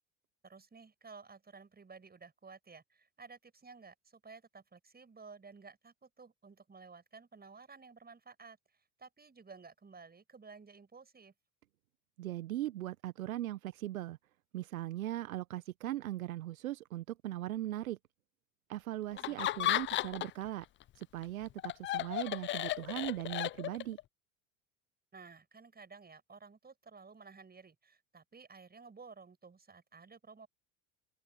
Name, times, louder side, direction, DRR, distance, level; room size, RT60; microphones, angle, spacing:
voice 1, 0.4-11.3 19.1-19.9 25.1-30.5, right 4 dB, 20° right, 7.1 m, -54 dB
voice 2, 12.2-14.2 14.5-18.0 18.7-20.6 21.0-24.0, right 14 dB, 80° right, 1.3 m, -39 dB
Laughter, 19.2-20.5 20.8-24.0, left 14 dB, 30° left, 0.4 m, -34 dB
open air
hypercardioid pair, 70°, 42 cm